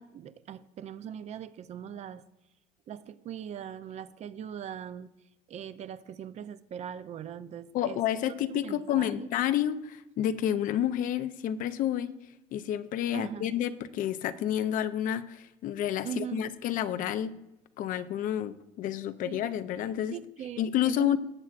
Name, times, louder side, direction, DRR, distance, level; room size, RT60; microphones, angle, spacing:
voice 1, 0.0-2.2 2.9-5.1 5.5-8.0 8.5-9.3 13.1-13.5 16.0-16.5 19.2-19.5 20.1-21.2, right 9 dB, 50° right, 13 dB, 0.6 m, -40 dB
voice 2, 7.7-12.1 12.5-17.3 17.8-20.1 20.6-21.2, left 11 dB, 60° left, 12 dB, 0.6 m, -30 dB
19.0 x 7.3 x 2.5 m, 0.91 s
cardioid pair, 105°, 15 cm